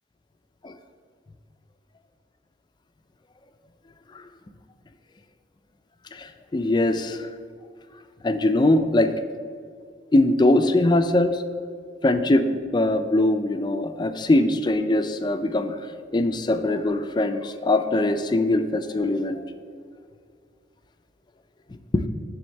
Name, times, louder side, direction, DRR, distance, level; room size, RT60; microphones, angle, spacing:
voice 1, 6.1-7.3 8.2-9.1 10.1-11.4 12.0-15.8 16.1-19.4 21.9-22.1, left 2 dB, 25° left, 9 dB, 0.4 m, -22 dB
7.6 x 3.5 x 6.5 m, 2.2 s
head